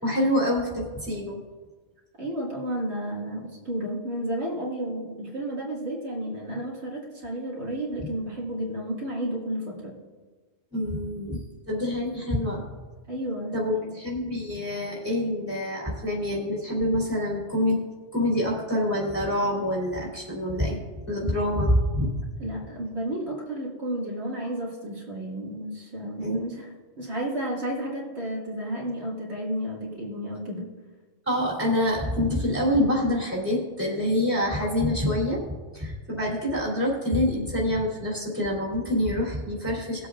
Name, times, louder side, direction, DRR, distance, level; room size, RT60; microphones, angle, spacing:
voice 1, 0.0-1.4 10.7-12.6 13.5-17.8 18.1-20.8 21.1-22.2 26.2-26.6 31.3-35.4 35.7-40.1, left 1 dB, 10° right, -5 dB, 3.4 m, -26 dB
voice 2, 2.2-9.9 13.1-13.9 22.4-26.7 27.0-30.7, right 1 dB, 80° right, -4 dB, 2.5 m, -32 dB
20.5 x 8.0 x 2.5 m, 1.3 s
omnidirectional pair, 1.1 m